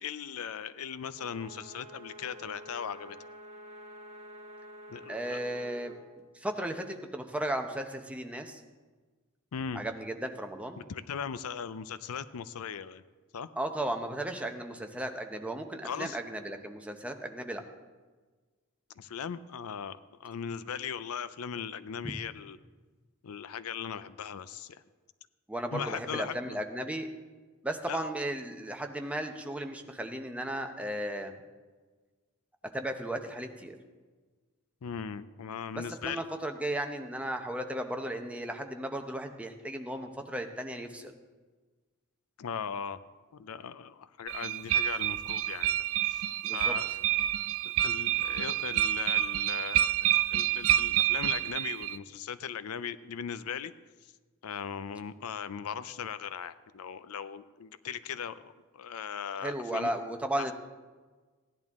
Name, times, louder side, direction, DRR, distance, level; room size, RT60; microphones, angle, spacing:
voice 1, 0.0-3.2 4.9-5.4 9.5-9.8 10.8-13.0 13.3-13.5 15.8-16.2 19.0-22.6 23.2-24.8 25.7-26.6 27.9-28.1 34.8-36.3 42.4-43.0 43.3-45.8 46.0-46.2 46.5-46.9 47.8-53.7 54.0-54.1 54.4-59.9, left 7 dB, 90° left, 15 dB, 0.5 m, -39 dB
sound 1, 1.1-6.0, right 1 dB, 30° right, 1.2 m, -49 dB
voice 2, 5.1-6.0 6.3-8.6 9.7-10.8 13.6-17.6 22.0-22.1 25.5-27.1 27.6-31.3 32.7-33.8 35.7-41.1 46.4-46.7 59.4-60.5, right 1 dB, 5° right, 5 dB, 0.8 m, -35 dB
sound 2, 44.3-52.0, right 12 dB, 65° right, 0.3 m, -28 dB
16.5 x 10.5 x 3.6 m, 1.3 s
head